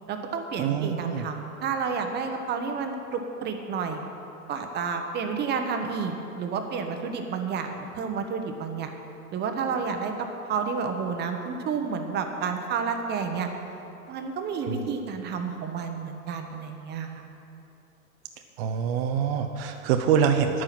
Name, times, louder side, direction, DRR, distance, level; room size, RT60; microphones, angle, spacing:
voice 1, 0.1-4.0 4.5-8.9 9.3-13.5 14.1-17.2, right 5 dB, 25° right, 5 dB, 1.0 m, -30 dB
voice 2, 0.6-1.2 14.7-14.8 18.6-20.6, right 7 dB, 45° right, 5 dB, 0.7 m, -25 dB
10.0 x 9.3 x 6.0 m, 2.8 s
hypercardioid pair, 125°, 44 cm